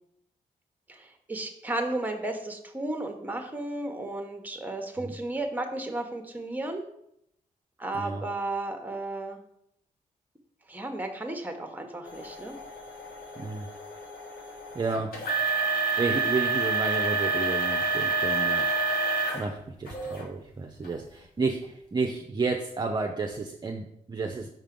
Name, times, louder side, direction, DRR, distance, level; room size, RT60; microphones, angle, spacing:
voice 1, 0.9-6.8 7.8-9.4 10.7-12.6, right 2 dB, 10° right, 5 dB, 1.0 m, -34 dB
sound 1, 12.1-19.5 19.9-20.2 20.8-20.9 21.6-21.7, right 4 dB, 85° left, 1.5 m, -28 dB
voice 2, 13.4-13.7 14.7-15.1 16.0-18.7 19.3-24.5, right 4 dB, 30° right, 2 dB, 0.6 m, -31 dB
5.8 x 3.6 x 5.2 m, 0.75 s
cardioid pair, 90°, 15 cm